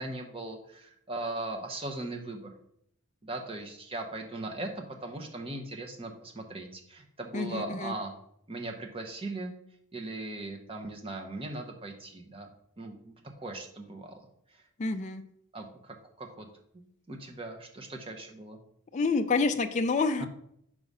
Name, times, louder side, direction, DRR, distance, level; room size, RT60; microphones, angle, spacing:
voice 1, 0.0-2.5 3.2-8.1 8.5-9.5 9.9-12.5 12.8-14.6 15.5-16.5 16.7-18.6 20.2-20.3, right 2 dB, 25° right, 3 dB, 0.8 m, -39 dB
voice 2, 7.3-7.9 14.8-15.2 18.9-20.3, left 4 dB, 30° left, 7 dB, 0.4 m, -28 dB
4.9 x 4.8 x 5.4 m, 0.71 s
head